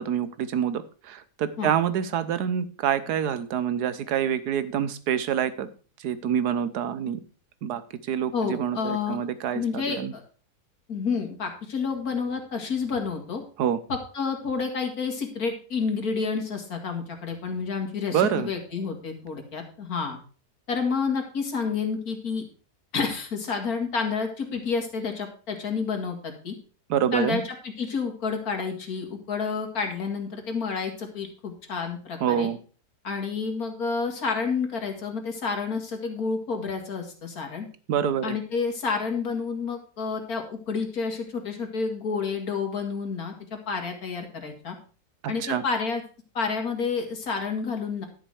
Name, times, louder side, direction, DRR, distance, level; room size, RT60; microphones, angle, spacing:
voice 1, 0.0-5.7 6.0-7.2 7.6-7.8 8.1-10.1 13.6-13.8 18.1-18.5 26.9-27.4 32.2-32.6 37.9-38.4 45.4-45.6, right 9 dB, 75° right, 14 dB, 1.4 m, -26 dB
voice 2, 8.3-9.2 9.5-10.2 10.9-13.4 13.9-20.2 20.7-22.4 22.9-26.5 27.1-32.5 33.0-37.7 38.2-44.8 45.3-46.0 46.3-48.1, left 5 dB, 60° left, 3 dB, 2.5 m, -29 dB
11.5 x 6.6 x 4.9 m, 0.38 s
omnidirectional pair, 1.7 m